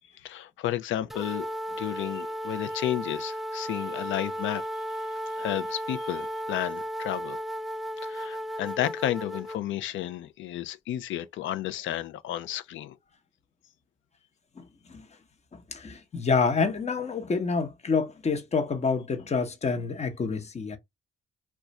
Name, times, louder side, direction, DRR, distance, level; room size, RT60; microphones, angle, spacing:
voice 1, 0.2-7.4 8.0-13.0, left 12 dB, 75° left, 0.5 m, -32 dB
sound 1, 1.1-9.6, equal, ahead, 0.3 m, -34 dB
voice 2, 14.6-15.1 15.5-20.8, left 4 dB, 35° left, 0.9 m, -28 dB
2.4 x 2.2 x 4.0 m
cardioid pair, 90°, 20 cm